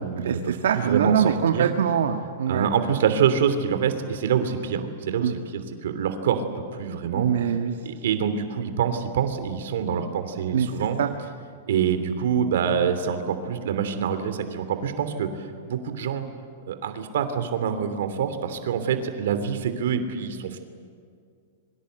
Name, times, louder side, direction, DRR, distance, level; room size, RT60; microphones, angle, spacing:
voice 1, 0.0-1.7 2.5-6.4 6.7-7.3 7.8-11.0 11.7-15.3 15.7-16.2 16.7-20.6, right 7 dB, 60° right, 9 dB, 3.0 m, -26 dB
voice 2, 0.6-2.7 5.2-5.3 7.1-7.7 10.5-10.7 11.0-11.1, right 8 dB, 85° right, 5 dB, 1.6 m, -23 dB
27.5 x 24.0 x 8.2 m, 2.2 s
supercardioid pair, 180°, 0 cm